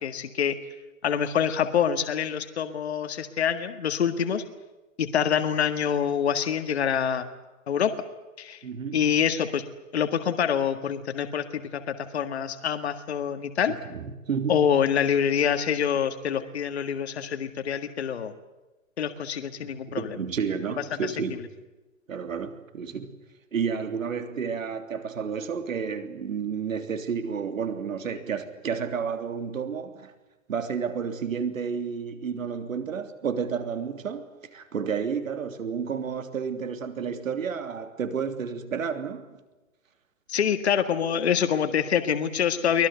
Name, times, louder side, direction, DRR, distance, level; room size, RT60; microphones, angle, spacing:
voice 1, 0.0-0.6 1.0-4.4 5.0-7.3 7.7-7.9 8.4-8.6 8.9-9.6 9.9-13.7 14.5-18.3 19.0-20.2 21.0-21.1 40.3-42.9, left 8 dB, 50° left, 1.8 m, -26 dB
voice 2, 8.6-9.1 13.6-14.6 19.9-21.4 22.1-23.1 23.5-30.1 30.5-34.2 34.5-39.2, right 6 dB, 70° right, 3.3 m, -31 dB
24.0 x 20.5 x 8.1 m
hypercardioid pair, 180°, 42 cm